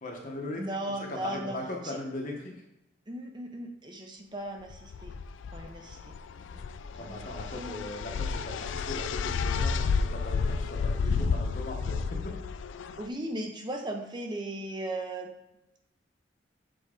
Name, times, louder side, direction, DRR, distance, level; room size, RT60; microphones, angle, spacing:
voice 1, 0.0-0.7 1.1-2.6 7.0-12.2, left 1 dB, 45° left, 0 dB, 1.1 m, -39 dB
voice 2, 0.6-1.6 1.8-2.0 3.1-5.2 5.5-6.7 6.9-7.2 7.5-7.8 13.0-15.3, right 1 dB, 25° right, 3 dB, 0.7 m, -37 dB
sound 1, 4.7-13.0, left 5 dB, 90° left, 0.4 m, -31 dB
6.8 x 4.5 x 3.7 m, 0.90 s
head